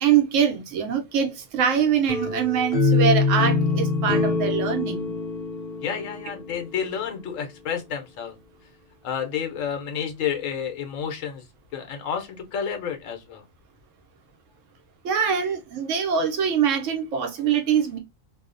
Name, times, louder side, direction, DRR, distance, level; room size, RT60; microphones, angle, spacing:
voice 1, 0.0-5.1 15.0-18.0, right 7 dB, 80° right, 1.0 m, -23 dB
sound 1, 2.1-7.0, left 3 dB, 65° left, 0.6 m, -24 dB
voice 2, 5.8-8.3 9.0-11.4 11.7-13.4, left 7 dB, 85° left, 1.1 m, -30 dB
2.7 x 2.0 x 2.4 m
omnidirectional pair, 1.3 m